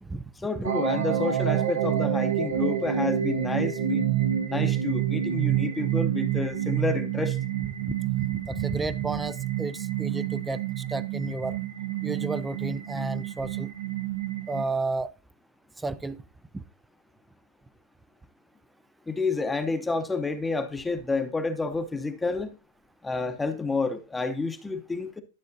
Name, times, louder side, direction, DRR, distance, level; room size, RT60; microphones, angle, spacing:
voice 1, 0.4-4.1 4.5-7.4 19.1-22.6 23.0-25.2, left 3 dB, 10° left, 0.7 m, -29 dB
sound 1, 0.6-14.6, right 10 dB, 85° right, 1.0 m, -28 dB
voice 2, 7.9-11.6 12.0-13.7 14.5-15.1 15.8-16.2 16.5-16.6, right 3 dB, 10° right, 0.3 m, -32 dB
11.5 x 6.4 x 2.7 m
hypercardioid pair, 130°, 0 cm